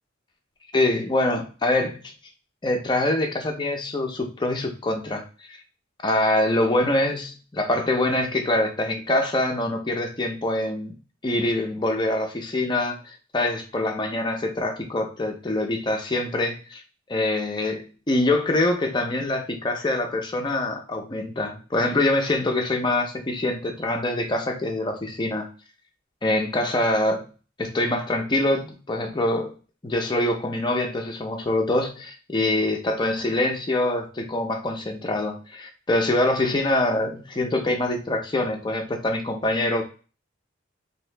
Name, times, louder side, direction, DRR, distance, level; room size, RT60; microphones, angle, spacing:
voice 1, 0.7-2.1 2.6-5.6 6.0-10.9 11.2-16.8 17.1-25.5 26.2-27.2 27.6-29.5 29.8-39.8, left 1 dB, 20° left, 4 dB, 0.5 m, -24 dB
2.8 x 2.7 x 3.3 m, 0.36 s
head